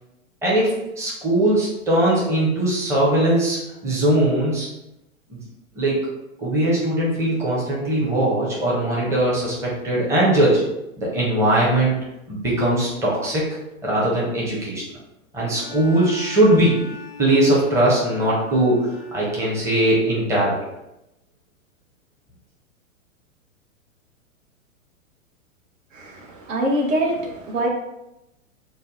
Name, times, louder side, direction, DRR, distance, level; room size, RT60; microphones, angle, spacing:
voice 1, 0.4-3.6 3.8-4.7 5.3-5.4 5.8-6.0 6.4-10.6 11.0-11.9 12.3-13.4 13.8-14.8 15.3-16.8 17.2-18.9 19.1-20.6, right 1 dB, 5° right, -6 dB, 0.6 m, -20 dB
Bowed string instrument, 15.5-20.2, left 4 dB, 35° left, 0.4 m, -40 dB
voice 2, 26.5-27.7, right 1 dB, 70° right, 0 dB, 0.9 m, -23 dB
2.6 x 2.1 x 3.8 m, 0.91 s
hypercardioid pair, 110°, 41 cm